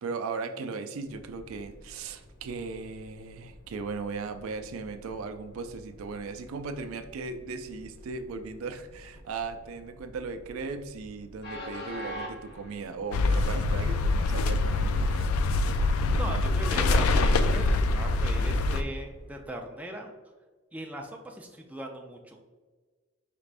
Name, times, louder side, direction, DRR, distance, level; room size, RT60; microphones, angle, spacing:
voice 1, 0.0-15.3, right 4 dB, 80° right, 8 dB, 0.4 m, -37 dB
Train, 1.0-19.6, equal, 50° left, 0.8 m, -48 dB
sound 1, 13.1-18.8, left 2 dB, 85° left, 0.3 m, -24 dB
voice 2, 16.1-20.1 20.7-22.4, right 1 dB, 5° right, 1 dB, 0.3 m, -39 dB
5.0 x 3.3 x 2.4 m, 1.4 s
head